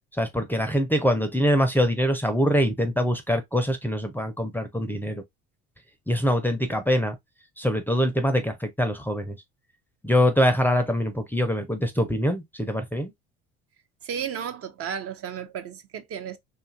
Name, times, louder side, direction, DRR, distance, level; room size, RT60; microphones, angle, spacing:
voice 1, 0.2-5.2 6.1-7.2 7.6-9.4 10.0-13.1, equal, 5° left, 0.5 m, -24 dB
voice 2, 14.0-16.4, right 8 dB, 45° right, 0.6 m, -33 dB
2.7 x 2.4 x 2.5 m
supercardioid pair, 80°, 32 cm